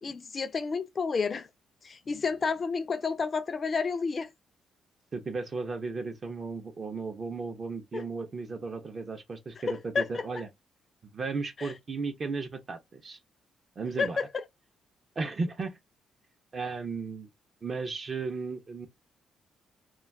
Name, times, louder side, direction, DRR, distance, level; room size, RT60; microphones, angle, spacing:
voice 1, 0.0-1.5 1.8-4.3 7.9-8.1 9.7-10.2 11.6-11.7 14.0-14.4, left 5 dB, 40° left, 0.4 m, -30 dB
voice 2, 5.1-10.5 11.0-13.2 13.8-14.2 15.2-15.8 16.5-17.3 17.6-18.9, right 4 dB, 40° right, 0.6 m, -35 dB
2.3 x 2.3 x 3.3 m
cardioid pair, 90°, 0 cm